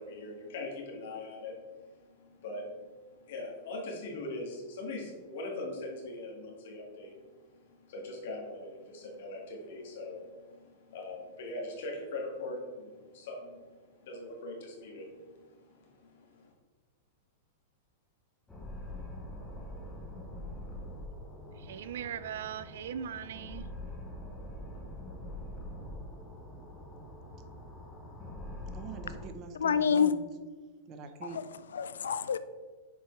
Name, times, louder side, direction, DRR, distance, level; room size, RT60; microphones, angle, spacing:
voice 1, 0.0-1.8 2.1-2.8 3.3-7.6 7.9-16.5, left 2 dB, 65° left, 0 dB, 1.8 m, -41 dB
sound 1, 18.5-29.3, left 1 dB, 15° left, 1.1 m, -44 dB
voice 2, 21.6-23.7, right 9 dB, 70° right, 14 dB, 0.4 m, -39 dB
voice 3, 28.7-30.3 30.9-31.4, right 5 dB, 35° right, 8 dB, 0.7 m, -44 dB
voice 4, 29.6-30.1 31.2-32.4, left 7 dB, 90° left, 13 dB, 0.4 m, -28 dB
6.7 x 4.6 x 3.2 m, 1.4 s
hypercardioid pair, 125°, 0 cm